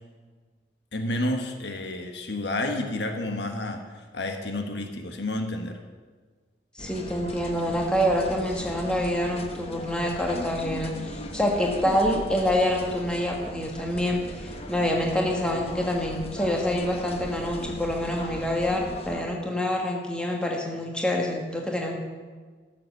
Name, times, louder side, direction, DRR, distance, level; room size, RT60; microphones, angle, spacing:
voice 1, 0.9-5.8, left 1 dB, 75° left, 5 dB, 1.3 m, -30 dB
voice 2, 6.7-22.0, equal, 5° left, 0 dB, 1.6 m, -26 dB
sound 1, 6.8-19.2, left 1 dB, 35° left, 0.9 m, -38 dB
13.0 x 7.4 x 6.6 m, 1.5 s
head